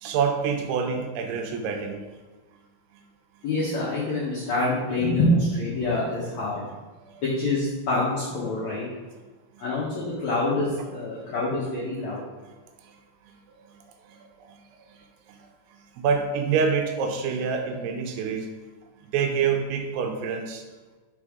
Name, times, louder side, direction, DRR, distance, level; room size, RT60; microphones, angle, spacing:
voice 1, 0.0-2.2 7.0-7.1 13.6-13.7 14.1-14.6 14.9-15.0 15.3-15.4 16.0-18.5 19.1-20.6, right 6 dB, 80° right, 4 dB, 2.6 m, -27 dB
voice 2, 3.4-6.6 7.2-8.9 9.6-12.2, left 2 dB, 70° left, -7 dB, 1.7 m, -26 dB
5.4 x 5.2 x 4.8 m, 1.3 s
omnidirectional pair, 4.9 m